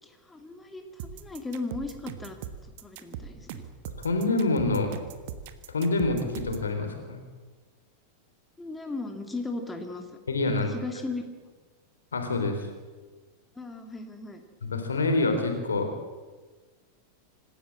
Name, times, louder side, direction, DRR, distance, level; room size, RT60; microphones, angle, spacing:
voice 1, 0.0-2.4 2.8-3.6 8.6-10.1 10.7-11.3 13.6-14.4, left 3 dB, 10° left, 5 dB, 2.1 m, -36 dB
sound 1, 1.0-6.7, right 9 dB, 50° right, 1.4 m, -40 dB
voice 2, 4.0-4.9 5.7-7.2 10.3-10.8 12.1-12.7 14.7-15.9, left 2 dB, 70° left, 5 dB, 3.5 m, -26 dB
25.5 x 13.0 x 7.7 m, 1.4 s
figure-of-eight pair, 90°, 0 cm